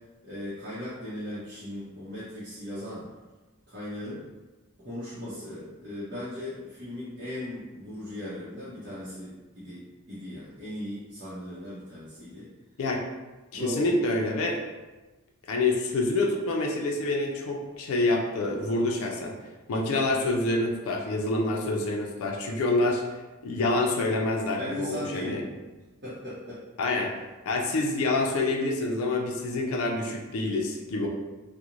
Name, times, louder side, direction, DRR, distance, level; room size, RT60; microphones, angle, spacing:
voice 1, 0.2-3.0 3.7-4.2 4.8-12.5 13.5-13.9 24.6-25.6 26.0-26.6, left 1 dB, 45° right, -12 dB, 0.7 m, -38 dB
voice 2, 13.5-14.6 15.5-19.3 19.7-23.0 23.4-25.4 26.8-27.1 27.5-31.1, left 2 dB, 85° left, 1 dB, 0.4 m, -27 dB
2.4 x 2.0 x 2.9 m, 1.2 s
head